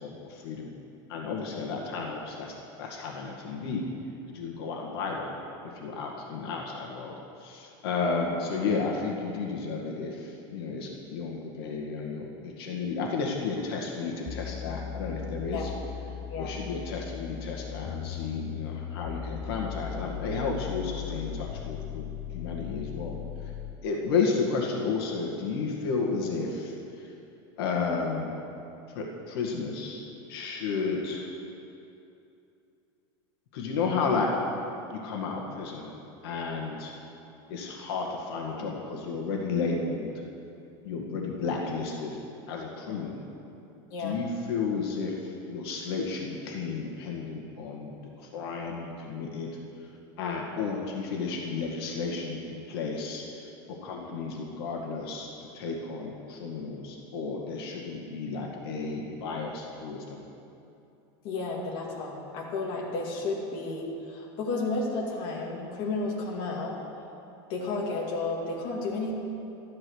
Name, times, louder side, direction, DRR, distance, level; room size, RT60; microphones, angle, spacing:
voice 1, 0.0-0.7 1.1-3.9 4.3-5.4 5.8-7.1 7.4-15.7 16.4-22.1 22.3-23.2 23.8-26.7 27.6-28.3 29.0-30.0 30.3-31.3 33.5-34.3 34.9-35.9 36.2-36.9 37.5-40.1 40.8-42.1 42.5-43.2 44.0-45.1 45.5-49.5 50.2-53.2 53.8-60.2, left 4 dB, 65° left, -1 dB, 1.9 m, -32 dB
sound 1, 14.3-23.8, left 9 dB, 20° left, 0.3 m, -38 dB
voice 2, 61.2-66.8 67.5-69.1, left 3 dB, 40° left, -2 dB, 2.1 m, -32 dB
13.5 x 11.5 x 6.4 m, 2.8 s
supercardioid pair, 175°, 14 cm